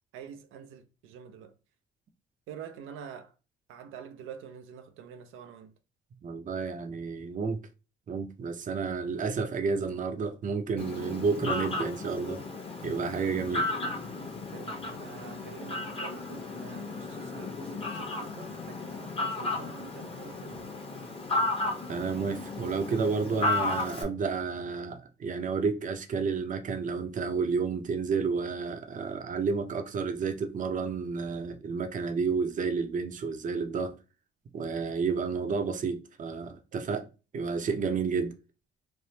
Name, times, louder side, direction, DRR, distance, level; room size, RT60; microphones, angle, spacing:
voice 1, 0.1-1.5 2.5-3.3 3.7-5.7 13.2-13.3 14.5-20.7 34.7-35.0 36.7-36.8, right 7 dB, 85° right, 0.5 m, -47 dB
voice 2, 6.2-7.6 8.1-12.4 12.8-13.7 21.9-33.9 34.5-37.1 37.3-38.3, right 5 dB, 40° right, 0.6 m, -31 dB
Fowl, 10.8-24.0, left 2 dB, 30° left, 0.9 m, -34 dB
3.3 x 2.0 x 2.7 m
cardioid pair, 90°, 20 cm